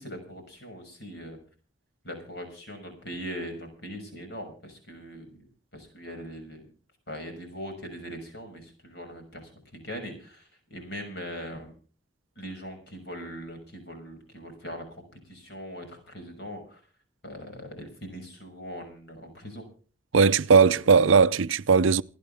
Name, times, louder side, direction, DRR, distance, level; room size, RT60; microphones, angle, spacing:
voice 1, 0.0-1.4 2.0-5.3 5.7-6.6 7.1-11.7 12.4-16.8 17.2-19.6 20.5-20.8, equal, 55° left, 6.3 m, -41 dB
voice 2, 20.1-22.0, right 5 dB, 80° right, 0.6 m, -19 dB
28.0 x 9.6 x 3.5 m
head